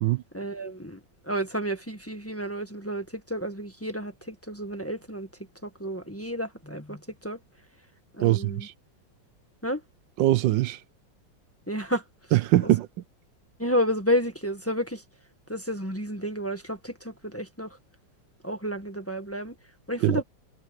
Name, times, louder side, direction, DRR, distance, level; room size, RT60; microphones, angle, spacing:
voice 1, 0.3-5.3 5.6-7.4 8.1-8.7 9.6-9.8 11.7-12.0 13.6-15.0 15.5-17.8 18.4-19.5 19.9-20.2, equal, 10° left, 1.5 m, -31 dB
voice 2, 8.2-8.7 10.2-10.8 12.3-12.9 20.0-20.2, right 15 dB, 80° right, 1.3 m, -22 dB
omnidirectional pair, 2.0 m